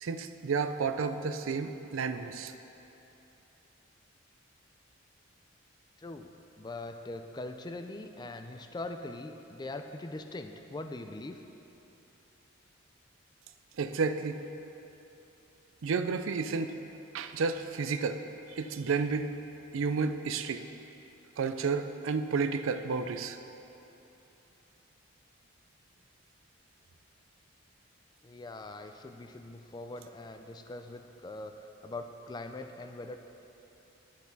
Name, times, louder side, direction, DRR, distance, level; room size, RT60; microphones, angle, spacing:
voice 1, 0.0-2.5 13.8-14.4 15.8-16.8 17.1-18.2 18.6-19.3 19.7-20.7 21.4-23.4, right 5 dB, 70° right, 10 dB, 0.4 m, -31 dB
voice 2, 6.0-6.3 6.6-11.4 28.2-31.6 31.8-33.2, left 2 dB, 20° left, 7 dB, 0.3 m, -42 dB
10.0 x 8.3 x 4.0 m, 3.0 s
head